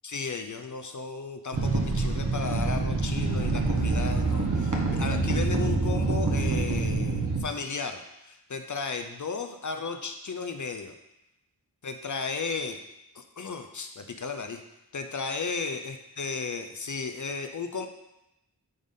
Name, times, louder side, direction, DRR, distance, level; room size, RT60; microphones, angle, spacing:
voice 1, 0.0-10.9 11.8-12.8 13.1-14.6 14.9-17.9, left 4 dB, 50° left, 6 dB, 0.6 m, -34 dB
sound 1, 1.5-7.4, right 3 dB, 50° right, 1.2 m, -26 dB
8.7 x 3.9 x 3.7 m, 0.88 s
wide cardioid pair, 90°, 39 cm